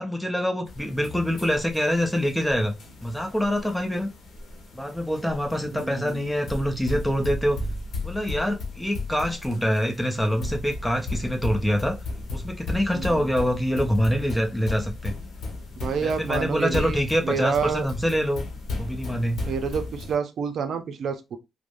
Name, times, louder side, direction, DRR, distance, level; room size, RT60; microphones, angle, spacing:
voice 1, 0.0-2.7 3.0-4.1 4.7-7.6 8.0-12.0 12.3-15.1 16.0-18.5 18.7-19.4, equal, 5° left, 0.7 m, -25 dB
sound 1, 0.7-20.2, left 2 dB, 85° left, 0.9 m, -35 dB
voice 2, 5.7-6.2 12.9-13.1 15.8-17.9 19.5-21.4, right 6 dB, 70° right, 0.5 m, -28 dB
3.2 x 2.1 x 2.5 m
cardioid pair, 95°, 0 cm